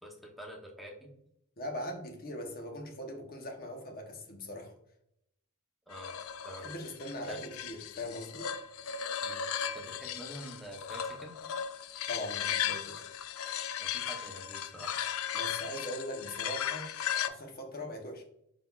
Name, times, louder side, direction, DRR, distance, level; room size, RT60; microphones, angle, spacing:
voice 1, 0.0-1.1 5.9-6.1 6.4-6.7 7.3-7.4 9.2-9.5 9.7-11.3 13.8-15.2, equal, ahead, 0.8 m, -46 dB
voice 2, 1.6-4.7 6.6-8.5 12.1-13.0 15.3-16.9 17.3-18.2, left 1 dB, 45° left, 0.9 m, -40 dB
sound 1, 5.9-17.3, left 9 dB, 75° left, 0.4 m, -36 dB
5.5 x 4.0 x 2.3 m
head